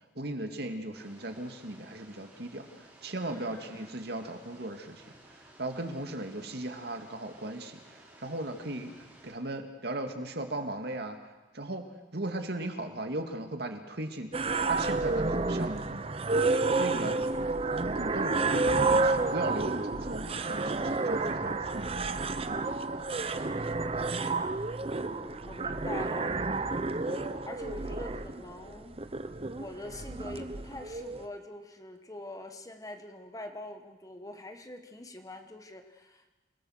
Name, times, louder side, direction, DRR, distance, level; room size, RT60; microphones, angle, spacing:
voice 1, 0.2-5.0 5.6-8.9 9.2-11.2 11.5-11.8 12.1-16.2 16.7-17.2 18.0-22.1 22.4-22.8, right 1 dB, 65° right, 5 dB, 2.3 m, -37 dB
sound 1, 0.9-9.3, right 1 dB, 10° right, 5.3 m, -56 dB
voice 2, 3.3-3.9 24.9-26.7 27.0-36.2, left 1 dB, 20° left, 6 dB, 1.5 m, -44 dB
sound 2, 14.3-31.2, right 3 dB, 35° right, 0.8 m, -30 dB
28.0 x 18.5 x 6.5 m, 1.1 s
head